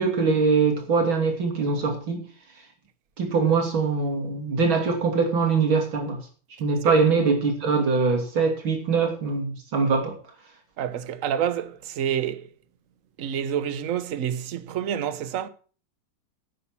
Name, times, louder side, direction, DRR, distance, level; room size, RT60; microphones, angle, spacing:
voice 1, 0.0-2.2 3.2-6.2 6.6-10.2, right 4 dB, 85° right, 3.7 m, -23 dB
voice 2, 10.8-12.5 13.2-15.5, right 9 dB, 50° right, 1.1 m, -28 dB
11.5 x 8.5 x 5.9 m
omnidirectional pair, 2.1 m